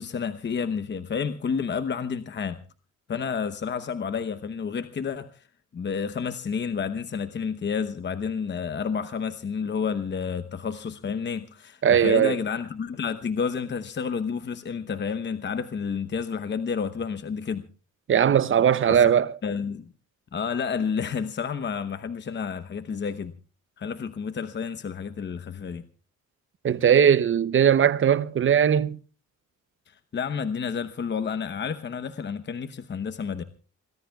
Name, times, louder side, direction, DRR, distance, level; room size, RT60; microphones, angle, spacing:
voice 1, 0.0-2.6 3.1-5.4 5.7-17.7 18.9-19.1 19.4-19.8 20.3-23.3 23.8-25.8 29.9-33.4, left 6 dB, 35° left, 0.9 m, -30 dB
voice 2, 11.8-12.4 18.1-19.4 26.6-29.0, right 8 dB, 40° right, 0.7 m, -19 dB
26.5 x 19.0 x 2.4 m
cardioid pair, 90°, 30 cm